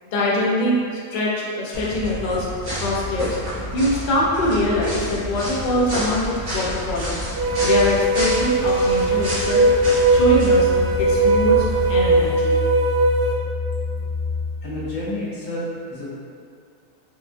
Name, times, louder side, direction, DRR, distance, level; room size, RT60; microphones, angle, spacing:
voice 1, 0.1-0.8 1.1-3.4 3.7-7.2 7.6-9.7 10.1-10.7 11.0-12.6, left 1 dB, 55° left, -5 dB, 0.5 m, -23 dB
sound 1, 1.7-12.3, equal, 90° right, 1.7 m, -30 dB
sound 2, 7.3-13.3, right 2 dB, 60° right, 0.7 m, -19 dB
sound 3, 7.6-15.1, left 4 dB, 15° right, 0.3 m, -29 dB
voice 2, 14.6-16.1, left 1 dB, 85° left, -9 dB, 1.5 m, -30 dB
4.8 x 2.6 x 2.2 m, 2.3 s
omnidirectional pair, 1.5 m